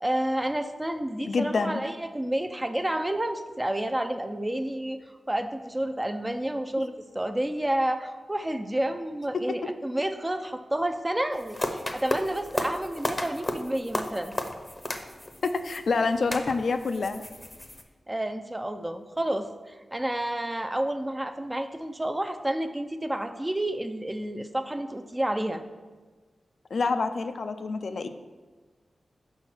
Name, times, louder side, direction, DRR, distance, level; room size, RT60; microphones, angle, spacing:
voice 1, 0.0-5.0 5.3-14.3 18.1-25.6, right 1 dB, 15° right, 7 dB, 0.5 m, -30 dB
voice 2, 1.3-1.8 9.5-9.6 15.4-17.2 26.7-28.1, left 4 dB, 70° left, 8 dB, 0.4 m, -27 dB
sound 1, 11.3-17.8, left 1 dB, 20° left, 0.7 m, -34 dB
5.5 x 4.5 x 6.0 m, 1.3 s
cardioid pair, 70°, 0 cm